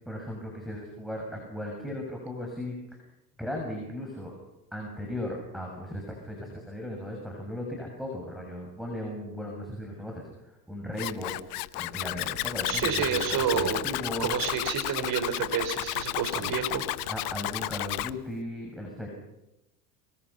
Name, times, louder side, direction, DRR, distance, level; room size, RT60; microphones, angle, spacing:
voice 1, 0.0-3.0 3.4-4.3 4.7-10.3 10.7-11.4 11.7-14.4 16.4-16.5 17.1-19.1, left 1 dB, ahead, 1 dB, 6.8 m, -37 dB
Zipper (clothing), 11.0-18.1, left 19 dB, 75° left, 0.9 m, -32 dB
voice 2, 12.6-13.8 14.2-17.1, right 7 dB, 45° right, 7 dB, 5.3 m, -29 dB
24.5 x 23.0 x 5.7 m, 0.91 s
hypercardioid pair, 90°, 46 cm